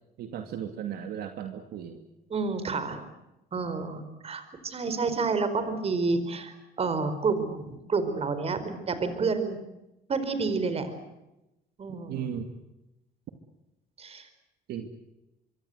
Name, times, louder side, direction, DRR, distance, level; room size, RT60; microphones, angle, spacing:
voice 1, 0.2-2.0 12.1-12.5 14.7-14.9, right 8 dB, 70° right, 6 dB, 2.4 m, -35 dB
voice 2, 2.3-3.1 3.5-9.6 10.1-10.9 11.8-12.3 14.0-14.3, right 4 dB, 35° right, 10 dB, 4.7 m, -29 dB
25.0 x 23.5 x 8.0 m, 0.92 s
cardioid pair, 110°, 17 cm